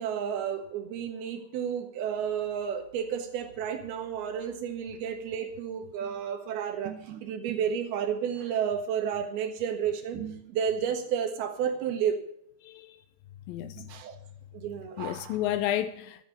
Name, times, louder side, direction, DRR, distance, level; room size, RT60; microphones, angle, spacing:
voice 1, 0.0-12.2 13.6-14.2 14.5-15.4, right 8 dB, 85° right, 3.4 m, -31 dB
voice 2, 12.6-13.0 13.5-13.8 15.0-16.2, left 12 dB, 80° left, 2.2 m, -31 dB
12.5 x 8.8 x 6.9 m
omnidirectional pair, 4.4 m